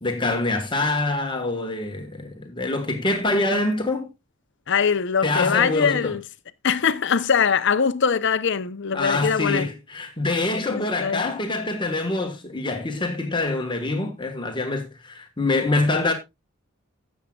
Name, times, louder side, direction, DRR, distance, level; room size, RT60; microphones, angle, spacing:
voice 1, 0.0-4.1 5.2-6.1 8.9-16.1, left 2 dB, 25° left, 1.4 m, -25 dB
voice 2, 4.7-6.2 6.6-9.7 10.7-11.2, left 6 dB, 60° left, 0.7 m, -22 dB
16.5 x 7.3 x 2.3 m
head